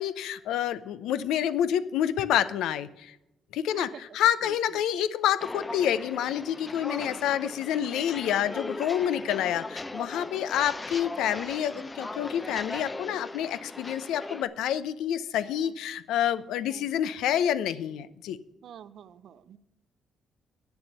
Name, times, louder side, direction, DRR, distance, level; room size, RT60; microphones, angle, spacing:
voice 1, 0.0-3.2 3.5-3.9 4.1-18.4, left 10 dB, 85° left, 14 dB, 0.6 m, -28 dB
voice 2, 3.7-4.8 6.8-7.1 15.4-15.7 16.7-16.9 18.6-19.6, right 9 dB, 70° right, 15 dB, 0.6 m, -47 dB
Walk footsteps, 5.4-14.4, left 2 dB, 20° left, 0.5 m, -39 dB
8.8 x 7.0 x 7.9 m, 0.93 s
cardioid pair, 90°, 0 cm